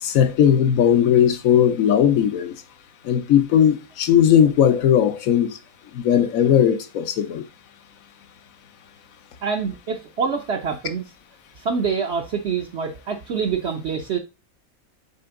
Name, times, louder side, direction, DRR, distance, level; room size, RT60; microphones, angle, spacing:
voice 1, 0.0-2.5 3.0-5.6 5.9-7.4, left 9 dB, 70° left, 1.2 m, -18 dB
voice 2, 9.4-11.0 11.6-14.2, right 6 dB, 55° right, 0.9 m, -26 dB
6.9 x 3.8 x 3.6 m
omnidirectional pair, 1.5 m